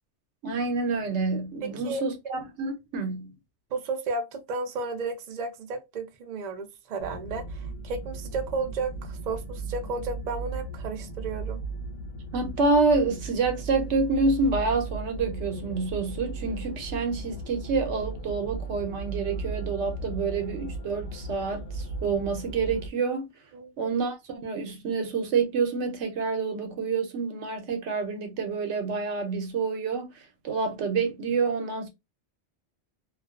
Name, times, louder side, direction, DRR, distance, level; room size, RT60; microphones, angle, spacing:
voice 1, 0.4-3.3 12.3-23.3 23.8-31.9, right 4 dB, 80° right, 1.0 m, -28 dB
voice 2, 1.6-2.0 3.7-11.6 23.5-23.8, right 3 dB, 50° right, 0.5 m, -33 dB
sound 1, 7.0-22.9, right 3 dB, 85° left, 0.9 m, -36 dB
2.4 x 2.2 x 2.3 m
omnidirectional pair, 1.2 m